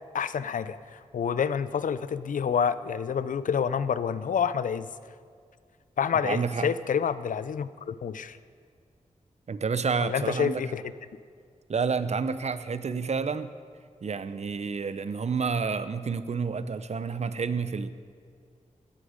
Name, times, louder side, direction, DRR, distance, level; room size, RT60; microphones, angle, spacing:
voice 1, 0.1-4.9 6.0-8.4 10.0-10.8, left 7 dB, 85° left, 14 dB, 0.5 m, -28 dB
voice 2, 6.2-6.7 9.5-10.6 11.7-13.5 14.0-17.9, right 5 dB, 55° right, 13 dB, 0.8 m, -29 dB
16.5 x 13.0 x 5.1 m, 2.2 s
wide cardioid pair, 70°, 13 cm